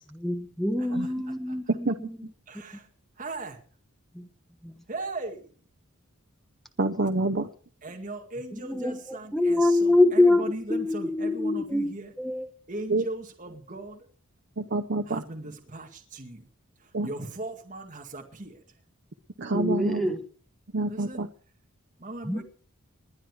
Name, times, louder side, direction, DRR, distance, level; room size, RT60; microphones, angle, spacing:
voice 1, 0.2-2.2 4.1-4.3 4.6-4.7 8.6-11.9 12.2-12.5 19.5-20.2 22.3-22.4, left 2 dB, ahead, 1.2 m, -25 dB
voice 2, 0.8-1.6 2.5-2.9 3.2-3.6 4.9-5.5 7.8-12.1 12.7-14.1 15.1-16.5 16.8-18.6 20.8-21.2 22.0-22.4, right 2 dB, 35° right, 2.1 m, -38 dB
voice 3, 6.8-7.5 12.9-13.0 14.6-15.2 16.9-17.1 19.4-20.0 20.7-21.3, right 2 dB, 55° right, 0.8 m, -27 dB
21.0 x 10.5 x 4.9 m
head